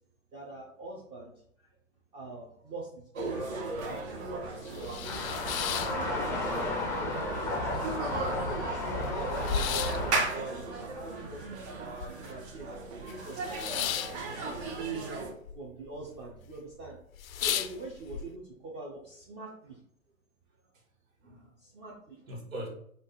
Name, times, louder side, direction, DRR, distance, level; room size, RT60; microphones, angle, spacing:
voice 1, 0.3-1.3 1.6-1.7 2.1-3.6 3.9-5.3 5.9-6.4 7.4-7.9 8.5-12.7 13.1-14.7 15.5-17.0 17.3-19.8 21.6-22.2, right 2 dB, 25° right, -3 dB, 0.7 m, -44 dB
sound 1, 3.1-15.3, right 3 dB, 55° right, 1.3 m, -36 dB
sound 2, 4.5-6.7 7.0-7.7 8.1-8.2 8.3-12.5 12.8-15.6 15.8-16.4 16.7-16.8 17.1-18.2, left 10 dB, 85° left, 0.5 m, -35 dB
sound 3, 5.0-10.2, left 2 dB, 10° left, 0.5 m, -33 dB
voice 2, 7.4-7.8 21.2-21.6 22.3-22.7, right 1 dB, 80° right, 1 dB, 1.7 m, -44 dB
5.0 x 2.5 x 3.9 m, 0.66 s
hypercardioid pair, 135°, 40 cm